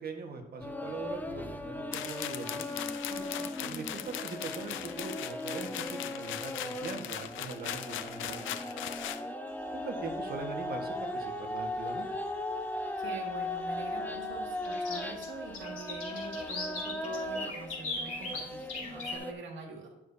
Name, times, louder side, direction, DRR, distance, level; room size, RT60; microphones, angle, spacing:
voice 1, 0.0-2.8 3.6-8.7 9.7-12.1, right 3 dB, 50° right, 4 dB, 1.4 m, -41 dB
sound 1, 0.6-19.3, left 1 dB, 10° left, 0.7 m, -38 dB
sound 2, 1.9-9.2, left 11 dB, 80° left, 0.6 m, -39 dB
voice 2, 3.1-3.8 13.0-19.9, right 3 dB, 70° right, 0 dB, 2.1 m, -45 dB
sound 3, 9.8-10.1 11.7-11.8 12.3-12.4 14.6-19.1, left 3 dB, 45° left, 2.7 m, -38 dB
11.0 x 7.1 x 2.7 m, 0.92 s
cardioid pair, 90°, 20 cm